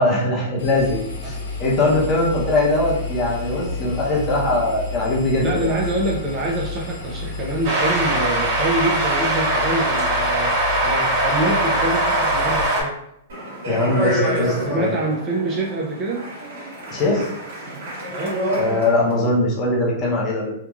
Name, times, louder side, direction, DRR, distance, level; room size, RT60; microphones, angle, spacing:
voice 1, 0.0-5.7 13.7-15.0 16.9-17.2 18.5-20.5, left 2 dB, 20° left, -3 dB, 0.6 m, -21 dB
Engine, 0.6-12.7, left 3 dB, 70° left, 0.8 m, -31 dB
voice 2, 5.4-13.0 14.1-16.3 18.1-18.4, right 2 dB, 20° right, -3 dB, 0.3 m, -26 dB
sound 1, 7.6-12.8, right 1 dB, 45° right, 1.4 m, -21 dB
Speech, 13.3-19.1, equal, 65° right, 1.4 m, -28 dB
2.9 x 2.3 x 2.3 m, 0.76 s
supercardioid pair, 175°, 0 cm